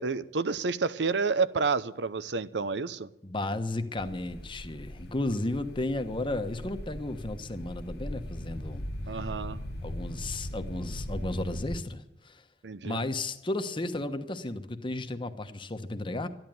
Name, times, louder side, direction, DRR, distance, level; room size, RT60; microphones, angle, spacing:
voice 1, 0.0-3.1 9.1-9.6 12.6-13.0, right 4 dB, 85° right, 15 dB, 0.7 m, -29 dB
voice 2, 3.2-8.9 9.1-9.3 9.8-12.4 12.9-16.3, left 2 dB, 30° left, 8 dB, 1.1 m, -34 dB
sound 1, 4.0-11.8, left 1 dB, 65° left, 1.2 m, -39 dB
13.0 x 10.5 x 9.2 m, 0.90 s
head